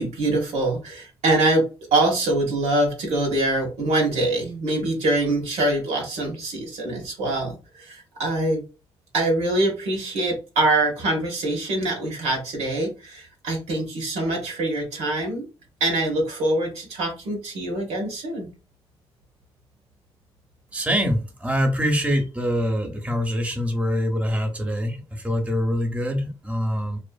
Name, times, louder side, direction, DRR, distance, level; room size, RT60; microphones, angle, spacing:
voice 1, 0.0-8.6 9.1-15.5 15.8-18.5, right 2 dB, 85° right, -1 dB, 0.9 m, -24 dB
voice 2, 20.7-27.0, equal, 10° right, 3 dB, 0.7 m, -24 dB
2.5 x 2.4 x 2.2 m, 0.32 s
supercardioid pair, 55°, 11 cm